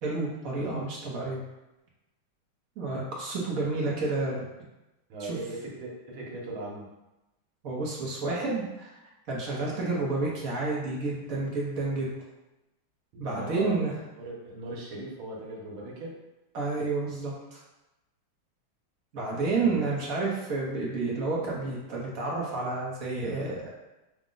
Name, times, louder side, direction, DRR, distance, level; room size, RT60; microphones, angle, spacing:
voice 1, 0.0-1.4 2.8-4.4 5.2-5.4 7.6-8.9 9.3-12.1 13.2-13.9 16.5-17.6 19.1-23.7, right 3 dB, 55° right, -3 dB, 1.2 m, -30 dB
voice 2, 5.1-6.9 13.1-13.8 14.2-16.1 19.6-19.8, right 2 dB, 80° right, -2 dB, 1.8 m, -39 dB
6.1 x 2.2 x 3.8 m, 0.98 s
omnidirectional pair, 2.2 m